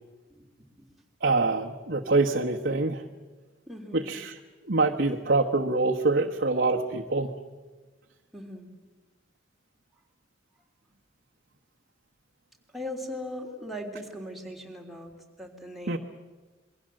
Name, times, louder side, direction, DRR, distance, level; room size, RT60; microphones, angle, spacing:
voice 1, 0.3-0.8 3.7-4.1 8.3-8.7 12.7-15.1 15.4-16.0, left 1 dB, ahead, 1 dB, 3.3 m, -39 dB
voice 2, 1.2-3.0 3.9-4.4 4.6-7.3 15.9-16.0, right 3 dB, 55° right, 1 dB, 1.2 m, -25 dB
27.5 x 22.5 x 7.7 m, 1.3 s
head